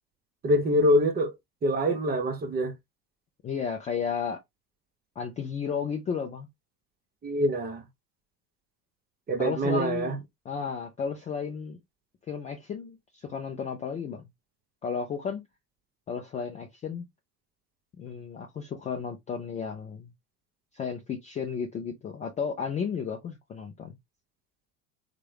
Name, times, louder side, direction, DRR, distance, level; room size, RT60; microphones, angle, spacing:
voice 1, 0.4-1.3 1.6-2.7 7.2-7.9 9.3-10.2, equal, 20° right, 0.6 m, -25 dB
voice 2, 3.4-4.4 5.2-6.5 9.4-11.8 12.3-14.3 14.8-15.4 16.1-17.0 18.0-20.1 20.7-24.0, left 6 dB, 15° left, 0.4 m, -33 dB
3.5 x 2.0 x 3.2 m
figure-of-eight pair, 75°, 48 cm